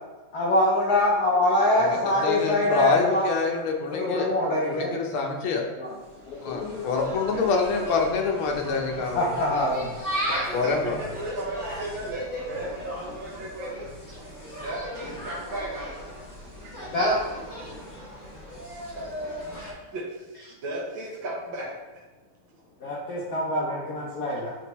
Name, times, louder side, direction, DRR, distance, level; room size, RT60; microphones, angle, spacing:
voice 1, 0.3-3.3 3.9-4.9 5.8-5.9 6.3-6.8 9.1-9.9 16.9-17.2 19.5-19.7 22.8-24.6, left 1 dB, 60° left, -5 dB, 1.2 m, -24 dB
voice 2, 1.8-4.3 4.7-5.6 6.4-9.3 10.5-11.0, left 4 dB, 85° left, 2 dB, 1.7 m, -26 dB
Insect, 5.9-19.7, equal, 10° left, 1.1 m, -36 dB
voice 3, 7.0-7.4 10.3-13.9 14.6-16.0 16.6-16.8 19.8-21.7, right 1 dB, 75° right, -4 dB, 1.8 m, -35 dB
9.1 x 3.5 x 3.0 m, 1.2 s
omnidirectional pair, 2.3 m